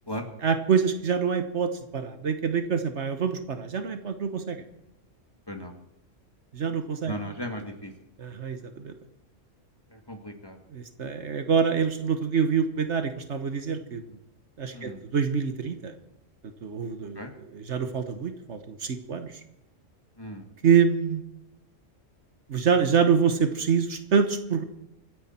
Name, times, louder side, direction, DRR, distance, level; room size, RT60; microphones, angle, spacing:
voice 1, 0.4-4.6 6.5-7.1 8.2-8.9 10.7-14.2 14.6-15.9 16.6-19.4 20.6-21.2 22.5-24.6, right 6 dB, 65° right, 8 dB, 1.4 m, -26 dB
voice 2, 7.1-7.9 9.9-10.6 14.7-15.0 17.2-17.3 20.2-20.5, equal, 20° left, 4 dB, 1.8 m, -36 dB
25.0 x 9.7 x 4.4 m, 0.91 s
omnidirectional pair, 1.3 m